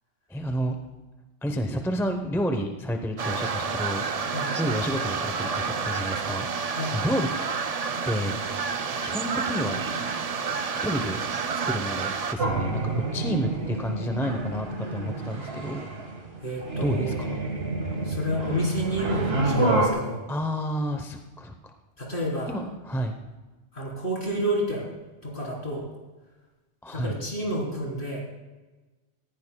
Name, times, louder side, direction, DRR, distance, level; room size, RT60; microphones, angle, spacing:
voice 1, 0.3-0.8 1.4-4.0 4.6-7.3 8.0-8.4 9.0-9.8 10.8-11.2 11.6-15.9 16.8-17.5 20.3-21.7 22.5-23.2 26.8-27.2, equal, 5° left, 4 dB, 0.7 m, -30 dB
sound 1, 3.2-12.3, right 5 dB, 40° right, 0.6 m, -29 dB
sound 2, 12.4-19.9, right 2 dB, 60° right, 2.0 m, -28 dB
voice 2, 16.4-17.2 18.0-20.2 22.0-22.6 23.7-24.9 25.2-25.9 26.9-28.2, equal, 50° left, -3 dB, 3.9 m, -30 dB
18.5 x 15.0 x 2.3 m, 1.2 s
omnidirectional pair, 1.2 m